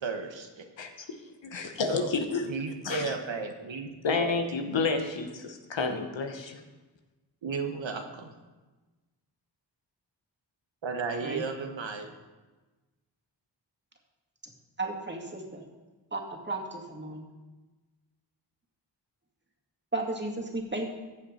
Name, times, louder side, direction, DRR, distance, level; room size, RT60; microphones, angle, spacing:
voice 1, 0.0-0.6 1.9-2.1 2.5-4.3 7.4-8.3 10.8-12.1, right 4 dB, 75° right, 4 dB, 1.3 m, -34 dB
voice 2, 1.4-2.5 2.8-3.1 4.0-6.6, left 4 dB, 70° left, 6 dB, 1.3 m, -30 dB
voice 3, 14.8-15.6 16.1-16.2 16.5-17.2 19.9-20.9, right 2 dB, 25° right, 0 dB, 2.3 m, -34 dB
14.5 x 7.2 x 4.3 m, 1.2 s
cardioid pair, 40°, 46 cm